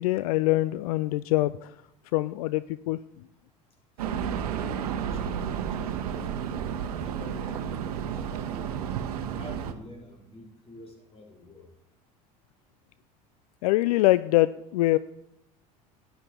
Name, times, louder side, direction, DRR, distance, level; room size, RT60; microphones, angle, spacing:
voice 1, 0.0-1.7 2.1-3.0 13.6-15.0, left 18 dB, 75° left, 16 dB, 0.4 m, -24 dB
voice 2, 4.0-6.6 6.9-7.8 8.1-8.8 9.3-11.7, left 2 dB, 30° left, 0 dB, 3.9 m, -47 dB
sound 1, 4.0-9.7, right 8 dB, 80° right, 1.0 m, -32 dB
12.5 x 10.5 x 4.4 m, 0.82 s
hypercardioid pair, 80°, 19 cm